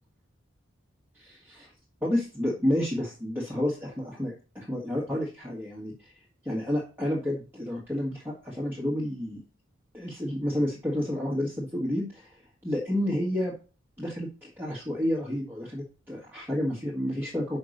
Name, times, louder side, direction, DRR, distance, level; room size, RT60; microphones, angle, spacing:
voice 1, 1.1-1.7 2.0-6.1 6.4-9.4 9.9-13.5 14.0-17.6, left 1 dB, 10° right, -4 dB, 1.5 m, -30 dB
5.8 x 5.4 x 6.4 m, 0.36 s
head